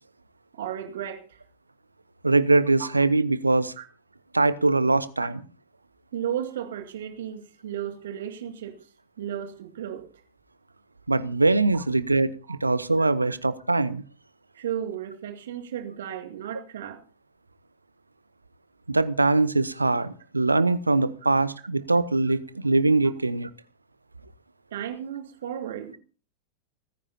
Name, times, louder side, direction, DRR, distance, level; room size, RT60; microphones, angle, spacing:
voice 1, 0.5-1.4 2.8-2.9 3.8-3.9 5.2-5.3 6.1-8.8 9.2-10.0 11.7-11.8 12.5-12.6 14.5-17.0 24.7-26.0, right 10 dB, 60° right, 7 dB, 2.2 m, -34 dB
voice 2, 2.2-3.7 4.3-5.4 11.1-14.0 18.9-23.5, right 3 dB, 80° right, 17 dB, 0.7 m, -22 dB
29.5 x 9.9 x 2.8 m, 0.38 s
figure-of-eight pair, 90°, 0 cm